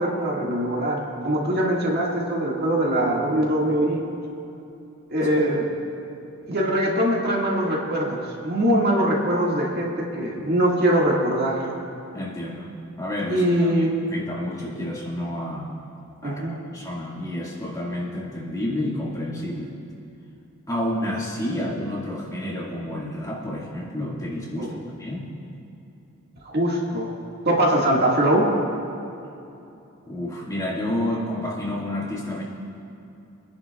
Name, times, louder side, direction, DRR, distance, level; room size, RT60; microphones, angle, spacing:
voice 1, 0.0-4.0 5.1-5.7 6.5-11.6 13.3-13.9 16.2-16.6 24.6-24.8 26.5-27.1 27.5-28.5, right 1 dB, 45° right, -3 dB, 1.9 m, -22 dB
voice 2, 12.1-12.7 13.0-15.7 16.2-19.7 20.7-25.3 30.1-32.4, left 1 dB, 15° left, -5 dB, 1.8 m, -30 dB
29.0 x 10.5 x 2.3 m, 2.8 s
head